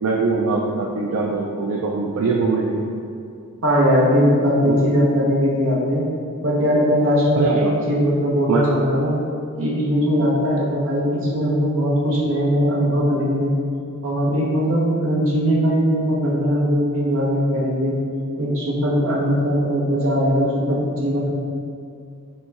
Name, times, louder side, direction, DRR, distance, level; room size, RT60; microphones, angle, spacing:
voice 1, 0.0-2.7 4.7-4.8 7.4-7.7 8.5-8.6, right 4 dB, 80° right, -2 dB, 0.4 m, -22 dB
voice 2, 3.6-6.0 6.4-9.1 9.6-13.6 14.0-18.0 18.4-21.3, equal, 65° right, -5 dB, 1.0 m, -20 dB
4.2 x 3.0 x 3.4 m, 2.4 s
head